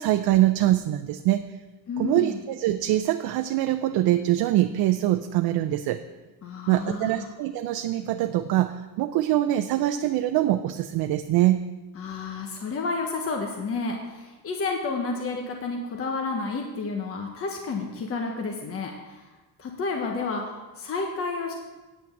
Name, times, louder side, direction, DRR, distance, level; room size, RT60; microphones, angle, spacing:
voice 1, 0.0-1.5 2.0-6.0 6.7-11.6, right 14 dB, 75° right, 8 dB, 0.5 m, -23 dB
voice 2, 1.9-2.4 6.4-7.3 12.0-19.2 19.6-21.5, left 4 dB, 35° left, 1 dB, 1.1 m, -31 dB
9.3 x 6.0 x 7.1 m, 1.2 s
cardioid pair, 135°, 38 cm